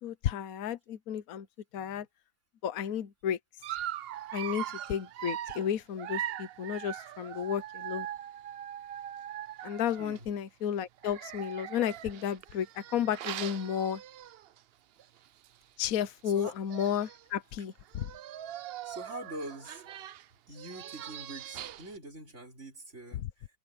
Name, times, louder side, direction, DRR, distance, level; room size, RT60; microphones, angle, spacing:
voice 1, 0.0-1.5 1.7-2.1 2.6-3.4 4.3-8.1 9.6-14.0 15.8-18.1 23.2-23.3, left 9 dB, 70° left, 1.3 m, -33 dB
Dog, 3.6-10.2 11.0-14.6 15.0-15.2 15.4-15.5 16.4-16.5 16.7-17.2 17.9-22.0, right 11 dB, 70° right, 0.6 m, -41 dB
voice 2, 9.9-10.3 15.9-16.6 17.6-17.7 18.8-19.9 20.5-23.5, right 1 dB, 50° right, 5.7 m, -44 dB
omnidirectional pair, 1.5 m